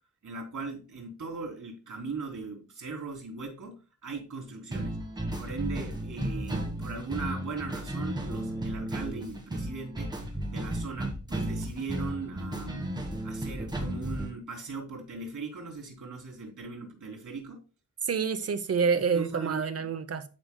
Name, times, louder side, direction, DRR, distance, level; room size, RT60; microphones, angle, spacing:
voice 1, 0.2-5.0 5.4-17.6 18.9-19.6, right 4 dB, 80° right, 3.4 m, -39 dB
sound 1, 4.7-14.3, right 1 dB, 15° right, 1.5 m, -34 dB
voice 2, 18.1-20.2, right 6 dB, 55° right, 0.8 m, -27 dB
12.5 x 5.0 x 2.3 m
wide cardioid pair, 155°, 30 cm